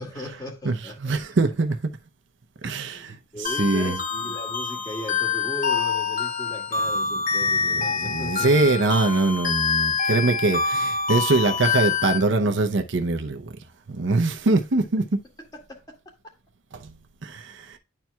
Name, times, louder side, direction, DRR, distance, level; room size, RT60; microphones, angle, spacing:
voice 1, 0.0-1.2 2.6-8.9 15.5-16.0, equal, 20° left, 1.9 m, -37 dB
voice 2, 0.6-1.8 2.6-4.0 8.0-13.6 13.9-15.0 16.7-16.9 17.2-17.8, right 3 dB, 60° right, 0.7 m, -23 dB
sound 1, 3.4-12.2, left 5 dB, 40° left, 1.2 m, -26 dB
10.5 x 4.5 x 2.3 m
head